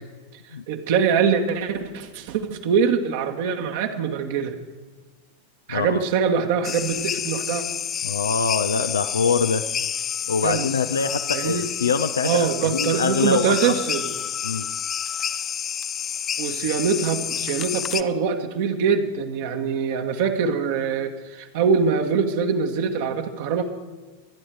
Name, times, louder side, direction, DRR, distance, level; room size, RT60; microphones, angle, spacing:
voice 1, 0.7-4.6 5.7-7.6 10.4-10.6 11.3-11.7 12.2-14.1 16.4-23.6, right 6 dB, 50° right, 4 dB, 1.4 m, -23 dB
voice 2, 5.7-6.0 8.0-9.7 10.3-13.8 14.4-14.7, left 5 dB, 70° left, 10 dB, 0.6 m, -24 dB
sound 1, 6.6-18.0, left 9 dB, 25° left, 0.6 m, -29 dB
24.0 x 10.0 x 4.8 m, 1.3 s
figure-of-eight pair, 90°, 0 cm